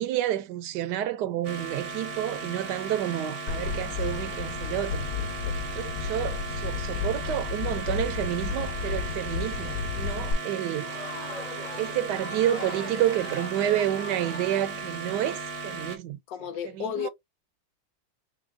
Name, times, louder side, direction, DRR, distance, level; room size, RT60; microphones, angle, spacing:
voice 1, 0.0-5.1 5.7-11.0 11.8-16.2 16.7-17.1, right 12 dB, 75° right, 1.1 m, -29 dB
sound 1, 1.4-16.0, right 4 dB, 50° right, 0.8 m, -37 dB
sound 2, 3.5-10.3, left 6 dB, 60° left, 1.2 m, -32 dB
Crowd, 10.5-15.4, left 3 dB, 40° left, 0.5 m, -42 dB
voice 2, 16.3-17.1, left 9 dB, 80° left, 1.3 m, -33 dB
4.2 x 2.2 x 3.6 m
omnidirectional pair, 1.9 m